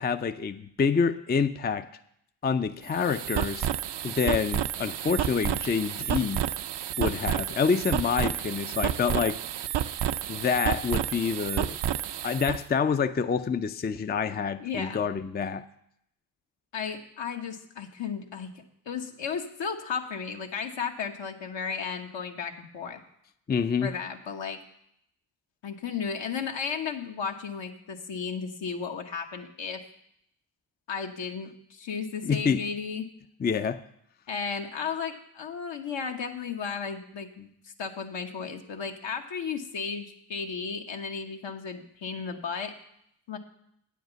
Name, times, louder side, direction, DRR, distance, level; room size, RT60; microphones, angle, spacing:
voice 1, 0.0-1.9 2.4-3.7 4.0-6.5 7.0-9.4 10.3-11.8 12.2-15.6 23.5-23.9 32.2-32.7 33.4-33.8, left 6 dB, 20° left, 10 dB, 0.4 m, -27 dB
sound 1, 2.8-12.6, right 11 dB, 60° right, 0.5 m, -30 dB
voice 2, 14.6-15.0 16.7-18.5 18.9-23.0 23.8-24.6 25.6-29.8 30.9-33.1 34.3-37.5 37.8-42.7 43.3-43.4, left 6 dB, 70° left, 4 dB, 1.2 m, -34 dB
8.9 x 5.2 x 7.9 m, 0.74 s
supercardioid pair, 40°, 46 cm